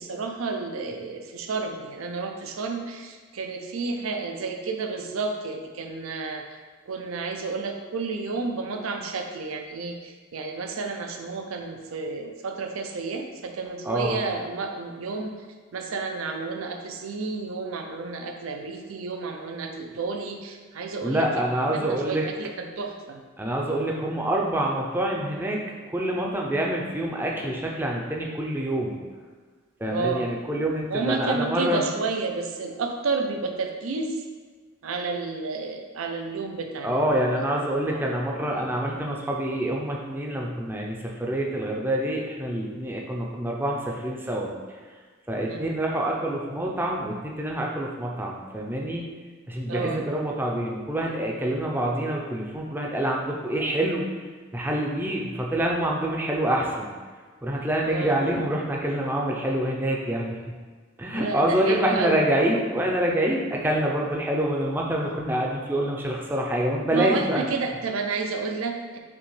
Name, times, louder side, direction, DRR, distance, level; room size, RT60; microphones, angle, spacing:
voice 1, 0.0-6.5 6.9-15.4 15.7-21.5 21.7-23.2 29.8-30.3 30.9-34.2 34.8-37.4 37.8-38.1 45.4-45.8 49.7-50.0 57.8-58.2 61.1-62.2 66.9-69.0, right 4 dB, 90° right, 4 dB, 0.5 m, -31 dB
voice 2, 13.8-14.2 21.0-22.3 23.4-25.6 25.9-29.0 29.8-31.8 36.8-44.5 45.3-49.0 49.5-54.1 54.5-56.9 57.4-60.4 61.0-67.4, right 1 dB, 10° right, -1 dB, 0.5 m, -26 dB
5.3 x 2.9 x 3.2 m, 1.5 s
head